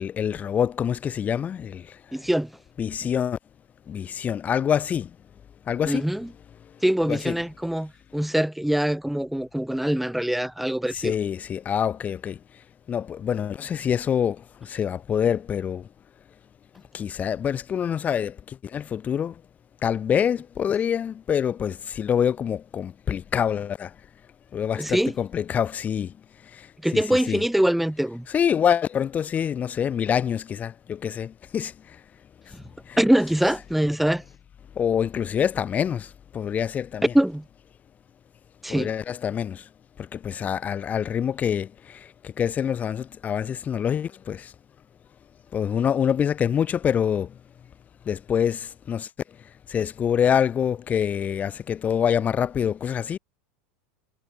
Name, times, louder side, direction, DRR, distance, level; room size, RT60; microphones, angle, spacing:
voice 1, 0.0-2.3 2.8-3.4 3.9-5.2 5.6-6.1 6.6-7.4 10.9-15.9 16.9-19.4 19.8-24.0 24.5-26.2 26.4-27.4 28.3-32.0 32.4-32.6 32.8-33.0 34.7-37.1 38.7-39.7 40.0-44.5 45.5-47.4 48.0-53.2, left 8 dB, 25° left, 3.3 m, -26 dB
voice 2, 2.1-2.5 5.9-6.3 6.8-11.1 24.8-25.1 26.8-28.3 32.5-32.6 33.0-34.2 37.1-37.4 38.6-38.9, right 1 dB, ahead, 2.3 m, -23 dB
supercardioid pair, 145°, 6 cm